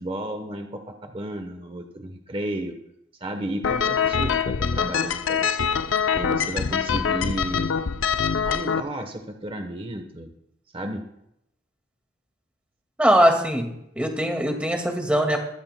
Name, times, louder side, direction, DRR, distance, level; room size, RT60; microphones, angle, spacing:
voice 1, 0.0-2.8 3.2-5.7 6.1-7.7 8.4-10.3 10.7-11.0, right 1 dB, 30° right, 5 dB, 1.0 m, -33 dB
sound 1, 3.6-8.8, left 6 dB, 80° left, 0.5 m, -24 dB
voice 2, 13.0-13.7 14.0-15.4, equal, 5° right, 2 dB, 1.9 m, -21 dB
20.0 x 13.0 x 2.2 m, 0.79 s
head